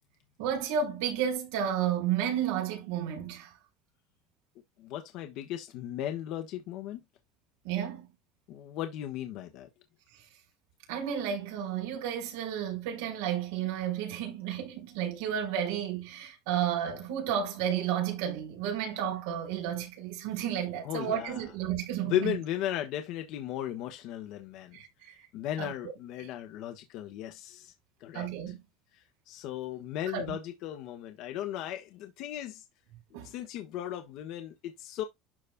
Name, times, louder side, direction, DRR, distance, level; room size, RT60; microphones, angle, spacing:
voice 1, 0.4-3.5 7.6-8.1 10.9-22.3 24.7-25.1 25.6-25.7 28.1-28.6 30.1-30.4 33.1-33.3, right 9 dB, 85° right, 4.3 m, -32 dB
voice 2, 4.8-7.0 8.5-9.7 20.8-21.5 22.0-24.8 25.3-27.7 28.0-28.3 28.9-32.6 33.2-35.0, left 11 dB, 55° left, 1.3 m, -36 dB
12.5 x 4.2 x 2.2 m
cardioid pair, 160°, 0 cm